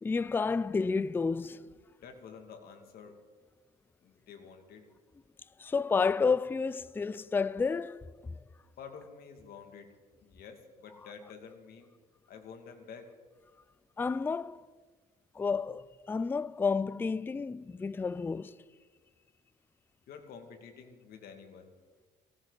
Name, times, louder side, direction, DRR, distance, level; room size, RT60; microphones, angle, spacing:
voice 1, 0.0-1.7 5.6-8.1 14.0-14.6 15.3-18.6, left 4 dB, 10° left, 0.3 m, -30 dB
voice 2, 2.0-3.2 4.0-4.9 8.8-9.9 10.2-11.9 12.3-13.1 20.1-21.7, left 6 dB, 65° left, 2.4 m, -49 dB
18.0 x 17.5 x 4.0 m
cardioid pair, 110°, 17 cm